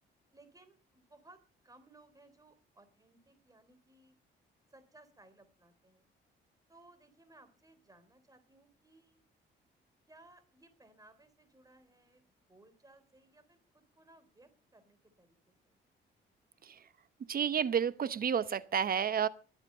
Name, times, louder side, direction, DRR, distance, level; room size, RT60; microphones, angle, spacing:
voice 1, 0.3-4.1 4.7-6.1 6.7-9.2 10.1-15.8, right 2 dB, 20° right, 3.7 m, -62 dB
voice 2, 17.3-19.3, right 8 dB, 50° right, 0.9 m, -31 dB
22.0 x 8.1 x 5.6 m
cardioid pair, 90°, 20 cm